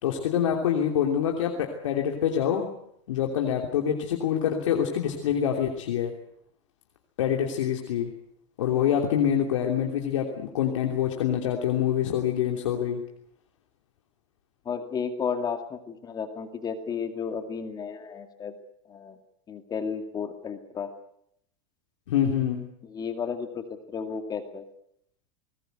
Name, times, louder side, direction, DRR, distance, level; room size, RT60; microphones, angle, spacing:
voice 1, 0.0-2.7 3.1-6.1 7.2-8.1 8.6-13.0 22.1-22.7, left 9 dB, 90° left, 2 dB, 3.1 m, -26 dB
voice 2, 14.7-18.5 18.9-19.2 19.5-20.9 22.8-24.6, left 6 dB, 25° left, 7 dB, 2.2 m, -33 dB
20.5 x 20.0 x 8.1 m, 0.71 s
supercardioid pair, 130°, 16 cm